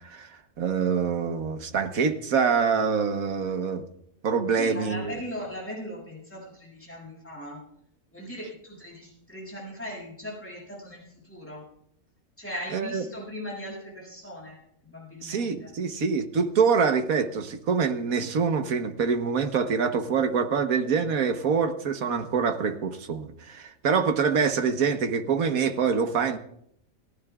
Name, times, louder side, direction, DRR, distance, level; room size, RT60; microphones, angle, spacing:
voice 1, 0.0-3.8 4.2-5.2 12.7-13.0 15.2-26.4, right 6 dB, 85° right, 8 dB, 1.6 m, -25 dB
voice 2, 4.6-7.6 8.1-11.6 12.4-14.6 14.8-15.7, left 1 dB, 10° left, -4 dB, 7.3 m, -39 dB
29.0 x 15.0 x 2.4 m, 0.72 s
omnidirectional pair, 1.4 m